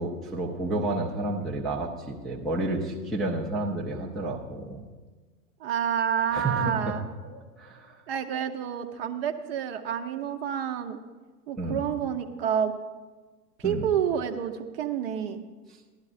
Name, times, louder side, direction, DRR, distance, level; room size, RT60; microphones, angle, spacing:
voice 1, 0.0-4.8 6.3-7.0 7.2-8.0 11.6-11.8 13.6-13.9, right 2 dB, ahead, -5 dB, 0.5 m, -31 dB
voice 2, 5.6-7.0 8.1-11.0 11.5-12.7 13.6-15.4, right 8 dB, 40° right, 6 dB, 0.7 m, -29 dB
16.0 x 11.0 x 2.5 m, 1.3 s
figure-of-eight pair, 105°, 48 cm